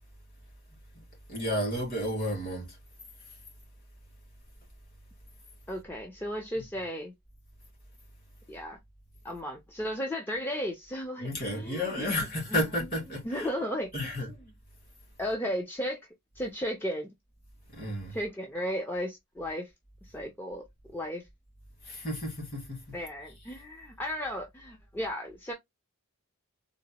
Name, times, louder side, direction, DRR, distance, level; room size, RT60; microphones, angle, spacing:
voice 1, 1.3-2.8 11.2-13.5 13.9-14.3 17.7-18.2 21.8-23.0, left 1 dB, 45° left, 1.9 m, -32 dB
voice 2, 5.7-7.1 8.5-8.8 9.2-12.1 12.5-12.6 13.3-13.9 15.2-16.0 16.4-17.1 18.1-19.7 20.1-20.7 20.9-21.2 22.9-25.5, equal, 10° left, 0.4 m, -34 dB
3.9 x 2.1 x 2.7 m
head